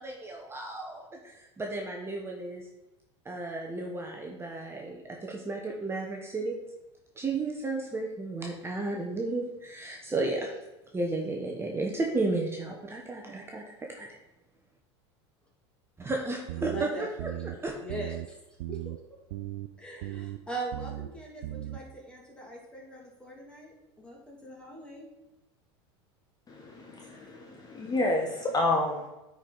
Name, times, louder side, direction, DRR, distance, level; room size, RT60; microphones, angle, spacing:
voice 1, 0.0-2.7 3.2-6.6 7.2-10.6 10.9-13.6 13.9-14.1 16.1-16.9 17.2-17.3 17.6-17.7, right 2 dB, 15° right, 0 dB, 1.2 m, -33 dB
sound 1, 16.5-16.8 17.2-17.6 17.9-18.3 18.6-19.0 19.3-19.7 20.0-20.4 20.7-21.1 21.4-21.8, right 16 dB, 75° right, 0.5 m, -37 dB
voice 2, 16.6-18.3 18.7-18.9 19.8-25.1, right 2 dB, 5° left, -2 dB, 2.8 m, -41 dB
voice 3, 26.5-29.1, left 2 dB, 25° left, 1 dB, 1.3 m, -29 dB
9.7 x 4.9 x 4.1 m, 0.98 s
hypercardioid pair, 100°, 15 cm